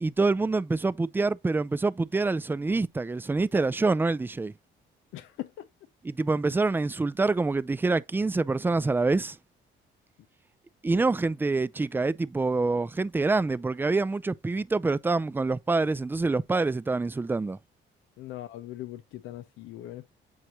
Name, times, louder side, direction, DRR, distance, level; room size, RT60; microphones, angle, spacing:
voice 1, 0.0-4.5 6.0-9.4 10.8-17.6, right 3 dB, 10° right, 0.3 m, -26 dB
voice 2, 5.1-5.7 18.2-20.1, left 14 dB, 90° left, 0.5 m, -40 dB
7.7 x 4.7 x 2.8 m
cardioid pair, 90°, 20 cm